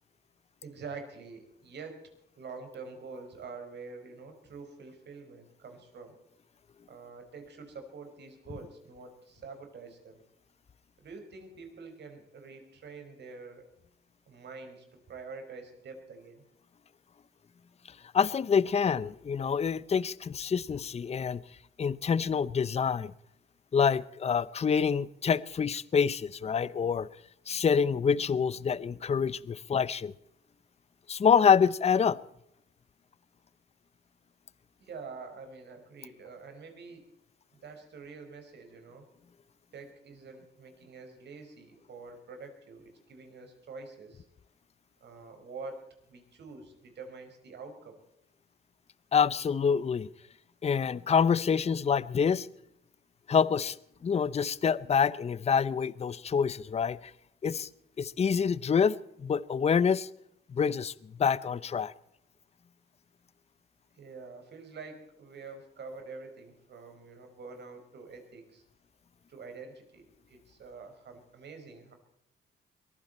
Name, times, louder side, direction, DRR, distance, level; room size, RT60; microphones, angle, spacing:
voice 1, 0.6-2.0 2.4-6.2 6.9-10.2 11.0-13.6 14.3-16.4 34.8-37.0 37.6-39.0 39.7-44.2 45.0-45.8 46.1-48.0 63.9-68.6 69.3-71.9, right 4 dB, 60° right, 6 dB, 5.0 m, -46 dB
voice 2, 18.1-21.4 21.8-23.1 23.7-27.1 27.5-30.1 31.1-32.2 49.1-50.1 50.6-52.5 53.3-53.8 54.0-57.0 57.4-57.7 58.0-60.1 60.5-60.9 61.2-61.9, left 6 dB, 30° left, 19 dB, 0.7 m, -26 dB
22.5 x 15.0 x 4.3 m, 0.78 s
cardioid pair, 90°, 20 cm